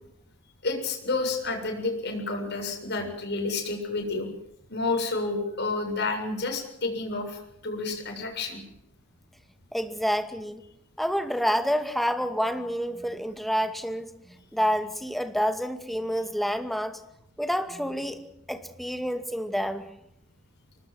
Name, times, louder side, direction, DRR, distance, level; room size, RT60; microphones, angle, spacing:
voice 1, 0.6-4.3 4.7-8.6, left 3 dB, 55° left, 3 dB, 7.3 m, -30 dB
voice 2, 9.7-10.6 11.0-14.1 14.5-17.0 17.4-18.2 18.5-19.9, equal, ahead, 8 dB, 2.3 m, -28 dB
24.5 x 20.0 x 7.9 m, 0.78 s
head